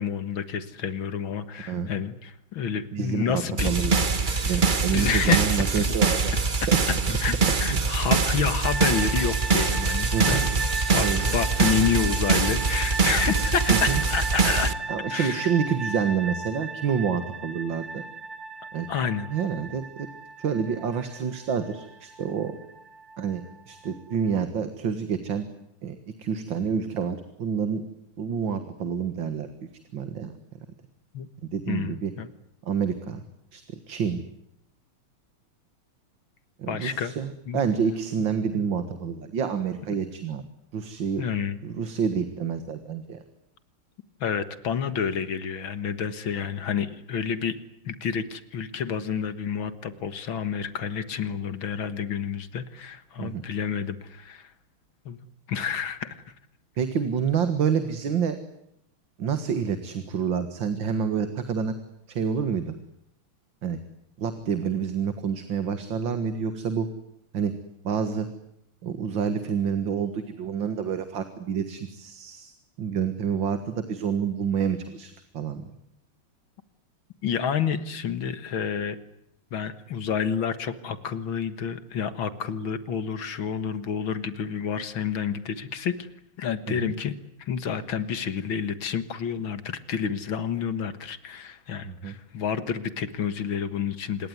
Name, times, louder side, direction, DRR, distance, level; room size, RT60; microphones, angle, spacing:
voice 1, 0.0-3.9 4.2-5.5 5.8-5.9 6.6-10.7 10.9-14.8 15.1-15.5 18.9-19.3 31.1-31.3 31.7-32.3 36.7-37.1 37.5-37.6 38.2-38.3 41.2-41.6 44.2-47.6 47.9-54.5 55.1-56.1 77.2-79.0 79.5-85.9 86.4-87.1 87.4-94.3, left 7 dB, 70° left, 13 dB, 2.3 m, -29 dB
voice 2, 2.9-4.0 4.4-6.3 6.7-6.8 7.7-7.8 10.1-10.4 11.0-11.2 13.7-14.0 14.9-18.0 18.7-18.9 19.3-20.1 20.4-22.6 23.2-25.5 25.8-27.8 28.2-29.5 29.9-30.3 31.5-32.1 32.7-33.2 33.5-34.2 36.6-40.4 40.7-41.2 41.6-43.2 53.2-53.4 56.8-58.4 59.2-61.7 62.1-62.7 63.6-63.8 64.2-66.9 67.3-67.5 67.8-68.3 68.8-72.5 72.8-75.6 86.7-86.9 91.8-92.1, right 7 dB, 60° right, 10 dB, 2.4 m, -28 dB
sound 1, 3.6-14.7, right 4 dB, 30° right, 1.0 m, -24 dB
sound 2, 8.6-24.4, right 3 dB, 45° right, 2.1 m, -35 dB
26.5 x 21.5 x 9.7 m, 0.77 s
omnidirectional pair, 2.3 m